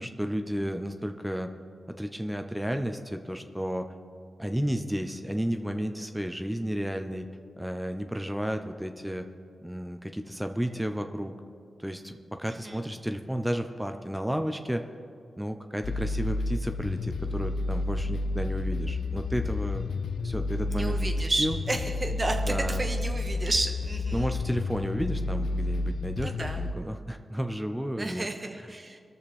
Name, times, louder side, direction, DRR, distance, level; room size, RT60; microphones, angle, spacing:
voice 1, 0.0-1.5 1.9-3.9 4.4-7.3 7.6-9.2 9.6-11.3 11.8-14.8 15.4-19.9 20.2-21.6 22.4-22.9 24.1-28.3, equal, 5° right, 7 dB, 0.9 m, -32 dB
voice 2, 12.5-12.8 20.7-24.3 26.2-26.6 28.0-29.0, right 2 dB, 40° right, 4 dB, 1.4 m, -32 dB
sound 1, 15.8-26.7, left 2 dB, 80° left, 0.6 m, -30 dB
19.0 x 6.7 x 4.4 m, 2.3 s
cardioid pair, 45°, 0 cm